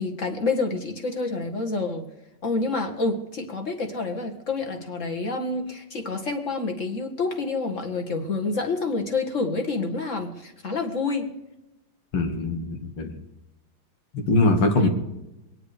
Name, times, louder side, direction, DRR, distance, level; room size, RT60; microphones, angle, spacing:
voice 1, 0.0-2.1 2.4-11.3 14.8-14.9, left 3 dB, 35° left, 3 dB, 2.1 m, -28 dB
voice 2, 12.1-13.2 14.1-14.9, left 2 dB, 80° left, 4 dB, 2.9 m, -22 dB
23.0 x 10.0 x 5.1 m, 0.95 s
omnidirectional pair, 2.4 m